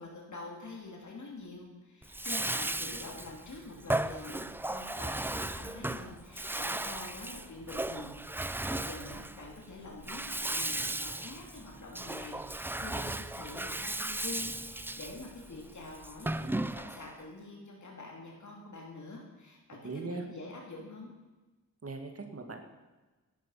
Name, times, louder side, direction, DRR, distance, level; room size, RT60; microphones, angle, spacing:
voice 1, 0.0-21.1, left 2 dB, 60° left, -1 dB, 3.0 m, -46 dB
Bathtub (filling or washing), 2.0-17.2, right 1 dB, 5° right, 0.4 m, -36 dB
voice 2, 19.8-20.3 21.8-22.6, right 3 dB, 45° right, 4 dB, 2.1 m, -39 dB
17.0 x 11.0 x 5.8 m, 1.2 s
wide cardioid pair, 130°, 33 cm